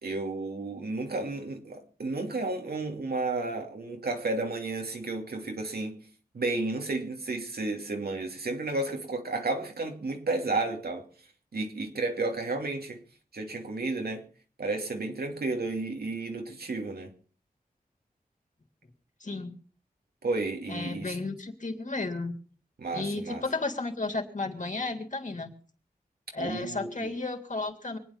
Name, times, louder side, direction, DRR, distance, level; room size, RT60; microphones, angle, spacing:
voice 1, 0.0-6.0 6.3-11.0 11.5-13.0 13.3-14.2 14.6-17.1 20.2-21.2 22.8-23.4 26.4-27.1, right 3 dB, 90° right, 3 dB, 2.7 m, -32 dB
voice 2, 19.2-19.5 20.7-22.3 22.9-25.5 26.3-28.0, left 3 dB, 55° left, 4 dB, 3.3 m, -33 dB
24.5 x 9.4 x 5.7 m, 0.41 s
cardioid pair, 50°, 16 cm